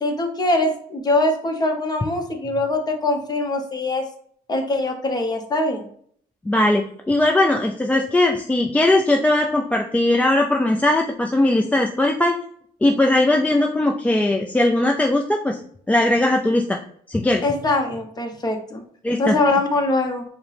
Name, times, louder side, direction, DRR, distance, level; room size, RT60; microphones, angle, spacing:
voice 1, 0.0-4.0 4.5-5.8 17.4-18.8 19.2-20.2, left 2 dB, 25° left, 4 dB, 0.8 m, -22 dB
voice 2, 6.5-12.4 12.8-15.6 15.9-16.8 17.1-17.4 19.0-19.4, left 1 dB, 10° left, 1 dB, 0.3 m, -19 dB
4.9 x 2.1 x 3.2 m, 0.62 s
cardioid pair, 110°, 17 cm